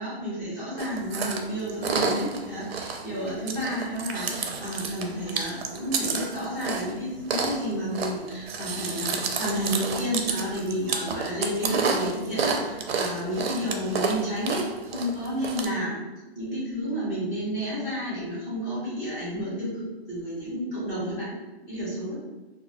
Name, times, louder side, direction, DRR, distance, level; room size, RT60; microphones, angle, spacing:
voice 1, 0.0-16.0 16.3-21.3 21.6-22.2, equal, 15° left, -10 dB, 0.9 m, -31 dB
Chewing mastication, 0.8-15.7, right 5 dB, 65° right, 0.5 m, -31 dB
3.2 x 2.3 x 2.6 m, 1.1 s
hypercardioid pair, 175°, 33 cm